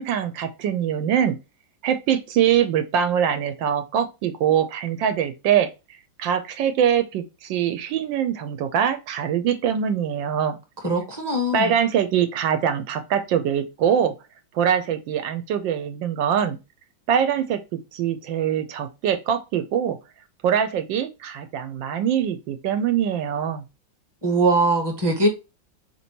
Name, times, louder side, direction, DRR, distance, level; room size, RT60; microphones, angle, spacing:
voice 1, 0.0-1.4 1.8-5.7 6.2-10.6 11.5-14.1 14.5-16.6 17.1-17.6 17.9-20.0 20.4-23.6, right 9 dB, 85° right, 1.3 m, -23 dB
voice 2, 10.8-11.7 24.2-25.3, right 2 dB, 15° right, 1.0 m, -21 dB
4.4 x 3.2 x 2.8 m
omnidirectional pair, 2.0 m